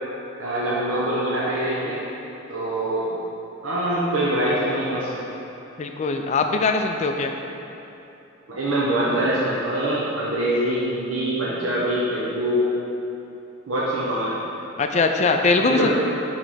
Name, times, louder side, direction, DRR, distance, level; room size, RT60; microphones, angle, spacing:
voice 1, 0.4-2.0 2.5-3.2 3.6-5.2 8.5-12.7 13.7-14.4 15.6-15.9, right 1 dB, 80° right, -7 dB, 0.8 m, -24 dB
voice 2, 5.8-7.3 14.8-15.9, left 3 dB, 35° left, 5 dB, 0.3 m, -21 dB
5.1 x 3.3 x 5.6 m, 2.9 s
head